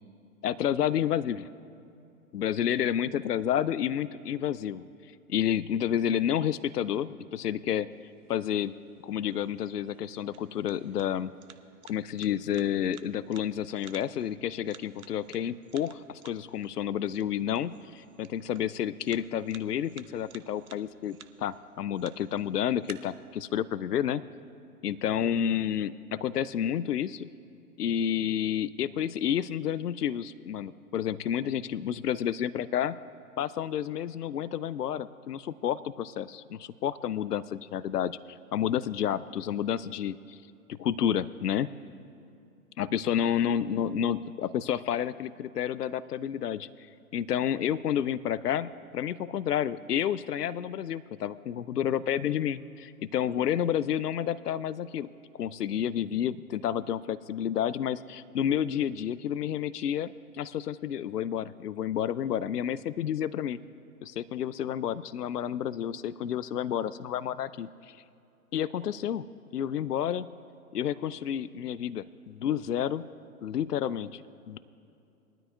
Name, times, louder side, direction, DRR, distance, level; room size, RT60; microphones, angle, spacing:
voice 1, 0.4-1.5 2.3-4.8 5.3-7.9 8.3-8.7 9.0-11.3 11.9-24.2 24.8-27.3 27.8-33.0 33.4-40.4 40.7-41.7 42.8-46.7 47.1-55.1 55.4-63.6 64.0-68.0 68.5-69.3 69.5-70.3 70.7-73.0 73.4-74.2 74.5-74.6, left 9 dB, 80° left, 17 dB, 0.5 m, -30 dB
sound 1, 7.9-22.9, right 8 dB, 65° right, 0.9 m, -55 dB
21.5 x 13.0 x 2.3 m, 2.7 s
figure-of-eight pair, 115°, 46 cm